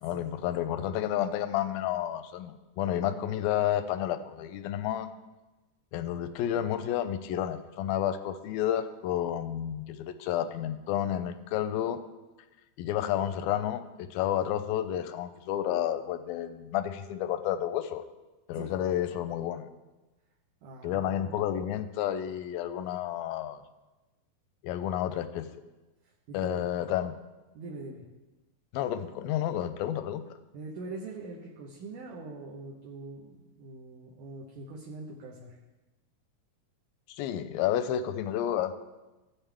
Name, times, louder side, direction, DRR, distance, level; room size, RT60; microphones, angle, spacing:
voice 1, 0.0-5.1 5.9-12.0 12.8-18.0 18.5-19.7 20.8-23.6 24.6-25.5 26.3-27.1 28.7-30.2 37.1-38.8, left 11 dB, 85° left, 10 dB, 2.4 m, -30 dB
voice 2, 20.6-21.3 26.0-26.7 27.5-28.0 30.5-35.6, right 3 dB, 70° right, -2 dB, 2.4 m, -43 dB
15.5 x 7.3 x 3.4 m, 1.1 s
omnidirectional pair, 4.2 m